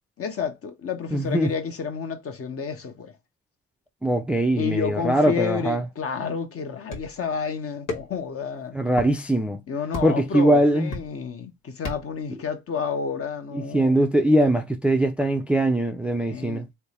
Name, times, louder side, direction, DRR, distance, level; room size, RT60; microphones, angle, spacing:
voice 1, 0.2-3.2 4.5-8.8 9.7-14.1 16.3-16.7, left 6 dB, 50° left, 0.9 m, -30 dB
voice 2, 1.1-1.5 4.0-5.8 8.7-9.6 10.0-10.9 13.5-16.7, right 1 dB, 5° right, 0.4 m, -21 dB
sound 1, 6.9-7.2 7.9-8.3 8.9-9.1 9.9-10.3 10.9-11.3 11.9-12.2, left 3 dB, 85° left, 1.4 m, -33 dB
3.4 x 2.1 x 4.2 m
cardioid pair, 90°, 30 cm